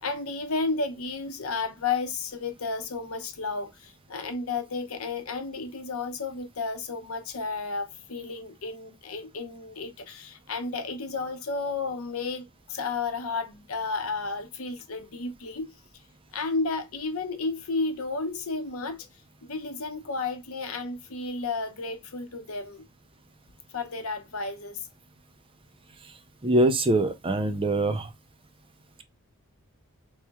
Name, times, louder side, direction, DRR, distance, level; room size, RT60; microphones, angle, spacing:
voice 1, 0.0-15.7 16.3-19.1 19.4-22.8 23.7-24.9, left 4 dB, 75° left, 0.8 m, -32 dB
voice 2, 26.4-28.1, right 1 dB, 25° right, 0.5 m, -23 dB
4.3 x 3.1 x 2.2 m
head